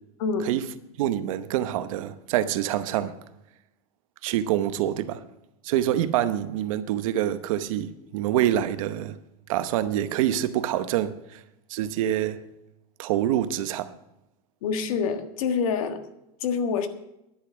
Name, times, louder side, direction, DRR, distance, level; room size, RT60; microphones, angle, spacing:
voice 1, 1.0-3.1 4.2-5.2 5.6-9.2 9.5-11.4 11.7-12.4 13.0-13.9, right 12 dB, 60° right, 0.9 m, -26 dB
voice 2, 14.6-16.0 16.4-16.9, left 5 dB, 65° left, 1.6 m, -26 dB
11.5 x 8.4 x 8.0 m
supercardioid pair, 165°, 19 cm